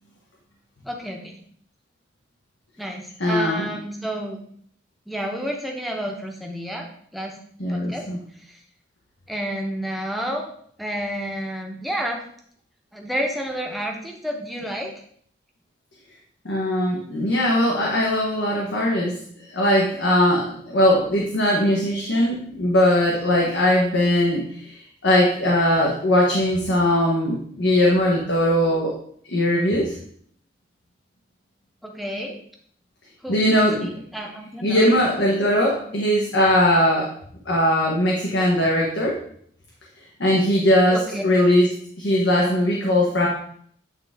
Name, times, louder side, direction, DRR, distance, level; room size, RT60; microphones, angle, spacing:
voice 1, 0.9-1.4 2.8-4.4 5.1-6.9 7.1-7.3 7.7-8.0 9.3-10.5 10.8-12.2 12.9-14.9 31.8-32.4 33.2-35.0 40.9-41.2, equal, ahead, 1 dB, 0.7 m, -30 dB
voice 2, 3.2-3.7 7.6-8.2 16.4-19.1 19.5-24.4 25.0-28.9 29.3-29.9 33.3-33.9 34.6-37.1 37.5-39.2 40.2-41.7 42.0-43.3, left 1 dB, 85° left, -2 dB, 1.1 m, -20 dB
8.6 x 3.6 x 3.5 m, 0.62 s
head